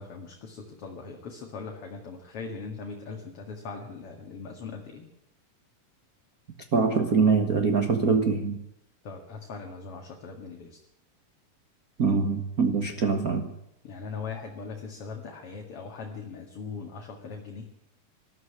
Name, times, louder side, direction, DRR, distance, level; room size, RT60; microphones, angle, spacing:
voice 1, 0.0-5.0 9.0-10.8 13.8-17.7, left 4 dB, 45° left, 2 dB, 2.6 m, -40 dB
voice 2, 6.7-8.6 12.0-13.5, right 5 dB, 50° right, 6 dB, 1.0 m, -23 dB
20.0 x 13.5 x 10.0 m, 0.78 s
omnidirectional pair, 4.0 m